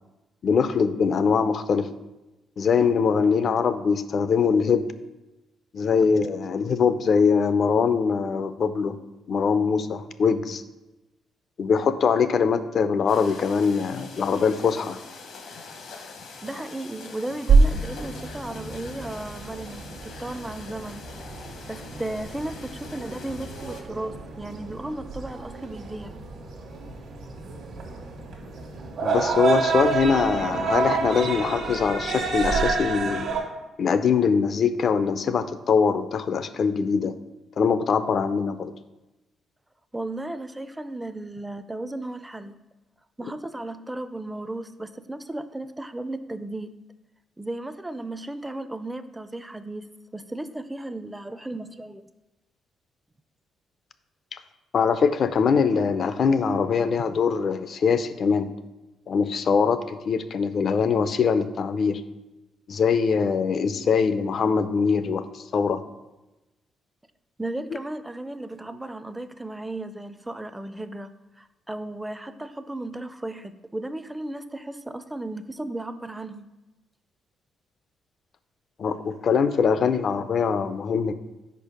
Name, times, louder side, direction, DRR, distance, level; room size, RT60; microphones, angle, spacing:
voice 1, 0.4-1.9 2.6-4.9 5.7-9.0 9.3-10.6 11.6-15.0 29.0-33.3 33.8-37.1 37.6-38.7 54.3-54.4 54.7-58.5 59.1-62.0 62.7-65.8 78.8-81.1, left 6 dB, 55° left, 12 dB, 0.4 m, -22 dB
sound 1, 13.1-23.8, left 4 dB, 75° left, 1.0 m, -44 dB
voice 2, 16.4-21.0 21.7-26.2 39.9-42.6 43.2-46.7 47.4-49.9 50.1-52.0 67.4-76.5, right 1 dB, 10° right, 11 dB, 0.4 m, -35 dB
sound 2, 17.5-33.4, right 4 dB, 75° right, 1.2 m, -27 dB
5.1 x 4.6 x 5.0 m, 1.0 s
cardioid pair, 90°, 0 cm